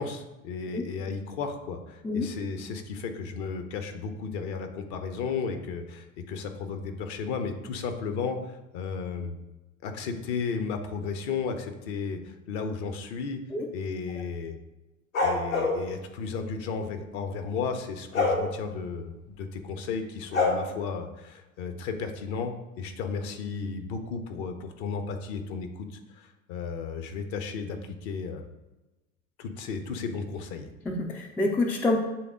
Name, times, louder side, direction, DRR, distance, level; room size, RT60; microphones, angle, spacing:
voice 1, 0.0-9.3 9.8-13.4 13.7-14.5 15.2-27.8 28.0-28.5 29.4-30.7, left 5 dB, 50° left, 7 dB, 0.9 m, -34 dB
sound 1, 15.1-15.8 18.1-18.4 20.3-20.5, left 3 dB, 75° left, 1.5 m, -24 dB
voice 2, 30.9-32.0, left 2 dB, 5° left, 3 dB, 0.3 m, -27 dB
7.7 x 3.5 x 3.7 m, 1.0 s
figure-of-eight pair, 75°, 41 cm